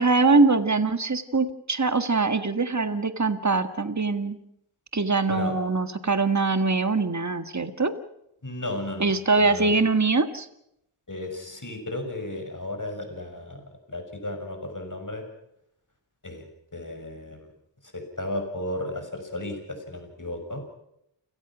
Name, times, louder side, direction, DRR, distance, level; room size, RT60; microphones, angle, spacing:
voice 1, 0.0-4.4 4.9-7.9 9.0-10.5, right 3 dB, 40° right, 10 dB, 1.7 m, -23 dB
voice 2, 8.4-9.8 11.1-13.6 13.9-15.2 16.2-16.5 16.7-17.5 17.8-20.6, left 1 dB, 45° left, 5 dB, 6.4 m, -34 dB
29.0 x 18.0 x 6.2 m, 0.78 s
wide cardioid pair, 40°, 44 cm